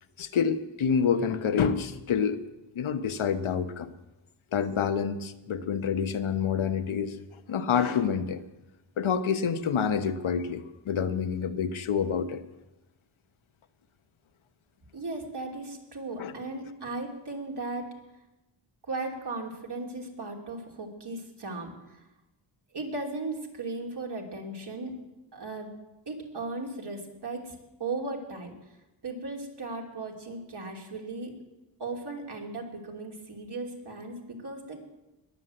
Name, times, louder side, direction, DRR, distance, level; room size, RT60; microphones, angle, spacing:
voice 1, 0.2-2.4 2.7-3.9 4.5-7.2 7.5-8.4 9.0-12.4 16.2-16.3, left 7 dB, 85° left, 9 dB, 1.1 m, -27 dB
voice 2, 14.9-17.9 18.8-22.0 22.7-25.0 25.3-25.7 26.1-28.5 29.0-31.4 31.8-34.8, right 3 dB, 55° right, 0 dB, 3.2 m, -37 dB
20.5 x 7.5 x 7.8 m, 1.0 s
cardioid pair, 80°, 47 cm